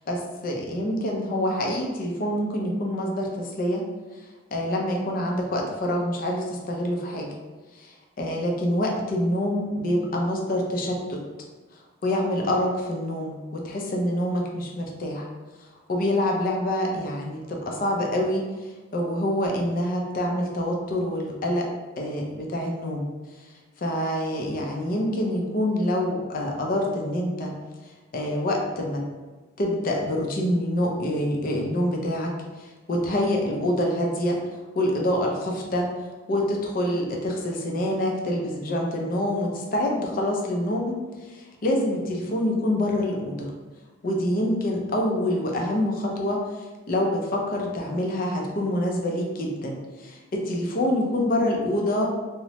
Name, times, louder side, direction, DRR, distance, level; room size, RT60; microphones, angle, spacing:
voice 1, 0.0-3.8 4.5-7.3 7.7-11.2 12.0-15.3 15.9-18.5 18.9-21.7 22.0-23.1 23.8-27.6 28.1-29.1 29.6-34.4 34.8-35.9 36.3-41.0 41.3-43.5 44.0-46.4 46.9-52.1, left 1 dB, 50° left, 0 dB, 0.4 m, -26 dB
3.0 x 2.0 x 2.7 m, 1.2 s
head